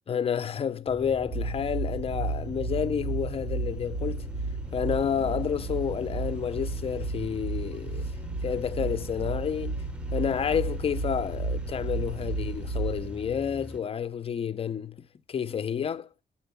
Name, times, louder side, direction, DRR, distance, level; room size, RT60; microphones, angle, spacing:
voice 1, 0.1-4.2 4.7-8.1 8.4-9.8 10.1-15.0 15.3-16.1, left 7 dB, 35° left, 0.4 m, -30 dB
sound 1, 0.9-13.8, left 1 dB, 5° right, 0.7 m, -41 dB
sound 2, 1.3-13.1, right 3 dB, 85° right, 0.6 m, -33 dB
8.8 x 4.2 x 6.9 m
wide cardioid pair, 130°, 17 cm